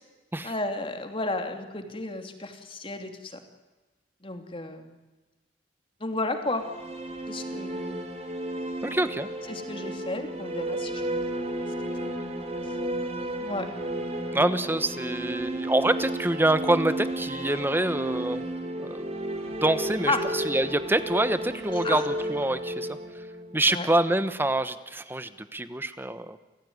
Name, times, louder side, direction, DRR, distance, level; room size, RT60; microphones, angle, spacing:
voice 1, 0.4-3.4 4.2-4.9 6.0-6.6 7.3-8.0 9.5-11.6 12.0-12.1 13.4-13.7 20.1-20.3 21.8-22.0 23.7-23.9, left 2 dB, 30° left, 5 dB, 2.8 m, -32 dB
sound 1, 6.3-24.3, right 1 dB, 35° right, 3.8 m, -33 dB
voice 2, 8.8-9.3 14.3-18.4 18.8-19.1 19.6-23.0 23.5-26.4, right 1 dB, 10° right, 12 dB, 1.1 m, -26 dB
29.5 x 15.0 x 9.5 m, 1.2 s
head